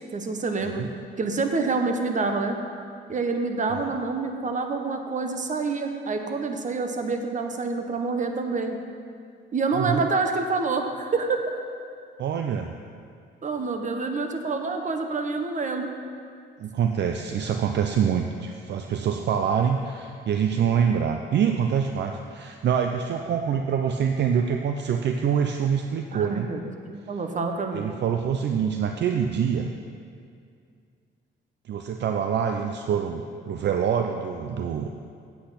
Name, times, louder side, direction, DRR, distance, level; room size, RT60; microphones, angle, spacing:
voice 1, 0.1-0.8 1.2-2.6 3.1-8.8 9.5-11.6 13.4-15.9 26.1-26.6 26.9-27.9, right 4 dB, 40° right, 5 dB, 1.1 m, -27 dB
voice 2, 12.2-12.7 16.6-26.5 27.7-29.7 31.7-34.9, right 7 dB, 60° right, 5 dB, 0.6 m, -25 dB
8.5 x 8.4 x 5.8 m, 2.3 s
cardioid pair, 90°, 20 cm